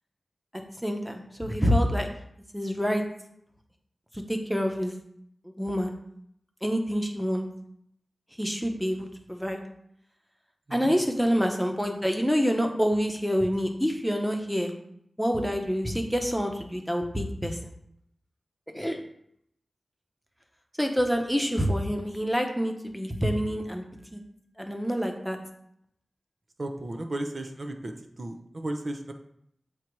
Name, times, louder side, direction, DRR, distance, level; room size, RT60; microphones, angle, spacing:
voice 1, 0.8-2.1 2.5-3.0 4.1-4.9 5.6-5.9 6.6-7.4 8.4-9.6 10.7-14.7 15.2-17.7 18.7-19.0 20.8-23.8 24.1-24.2 24.6-25.4, equal, ahead, 4 dB, 0.9 m, -27 dB
voice 2, 10.7-11.0 26.6-29.1, right 1 dB, 50° right, 4 dB, 0.7 m, -35 dB
7.6 x 2.8 x 4.6 m, 0.72 s
wide cardioid pair, 70°, 0 cm